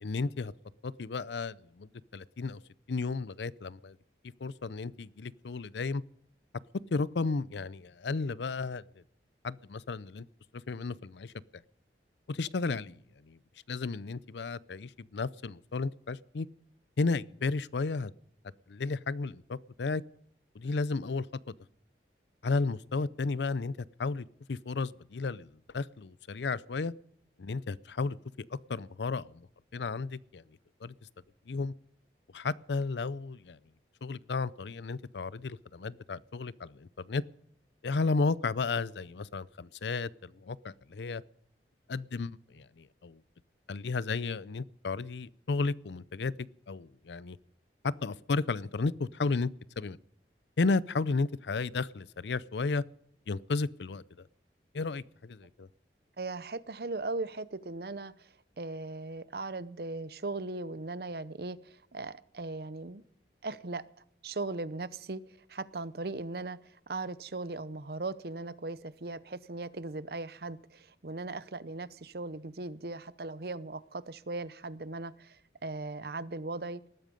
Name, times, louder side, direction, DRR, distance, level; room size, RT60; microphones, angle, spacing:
voice 1, 0.0-0.5 0.8-2.6 2.9-4.0 4.4-6.0 6.9-8.8 9.4-10.3 10.7-11.3 12.3-13.4 13.7-16.5 17.0-18.1 18.7-20.0 20.5-21.3 22.4-26.9 27.4-28.2 28.5-29.5 29.7-30.4 30.8-30.9 31.5-31.7 32.3-33.6 34.0-37.2 37.8-41.2 41.9-43.2 43.7-47.4 47.8-49.5 49.8-50.0 50.6-52.8 53.3-54.3 54.7-55.7, left 3 dB, 80° left, 20 dB, 0.5 m, -33 dB
voice 2, 56.2-63.0 63.4-63.8 64.2-76.8, right 3 dB, 60° right, 16 dB, 0.8 m, -38 dB
19.5 x 13.5 x 5.3 m, 0.71 s
head